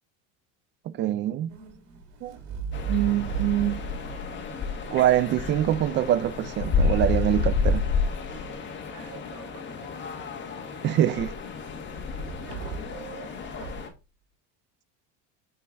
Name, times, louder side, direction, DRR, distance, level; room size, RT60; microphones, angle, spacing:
voice 1, 0.9-1.6 2.2-2.4 2.9-3.8 4.9-7.9 10.8-11.3, right 12 dB, 35° right, 0.4 m, -24 dB
sound 1, 1.5-5.6 6.6-8.9 12.2-13.1 13.5-13.9, right 5 dB, 75° right, 2.8 m, -37 dB
sound 2, 2.7-13.9, left 5 dB, 30° left, 1.6 m, -30 dB
voice 2, 8.9-9.9 12.5-13.4, right 6 dB, 55° right, 4.5 m, -46 dB
8.5 x 4.6 x 3.7 m
cardioid pair, 150°, 36 cm